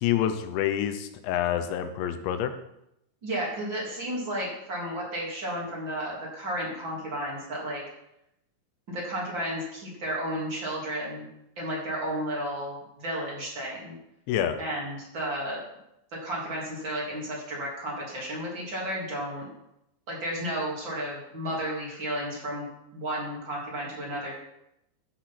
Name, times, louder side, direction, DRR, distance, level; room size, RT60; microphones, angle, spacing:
voice 1, 0.0-2.5 14.3-14.6, left 10 dB, 85° left, 8 dB, 3.2 m, -27 dB
voice 2, 3.2-7.8 8.9-11.3 11.6-14.0 14.6-15.6 16.2-19.5 20.1-22.7 22.9-24.3, right 1 dB, 30° right, -4 dB, 3.5 m, -33 dB
12.5 x 6.1 x 5.9 m, 0.83 s
omnidirectional pair, 5.1 m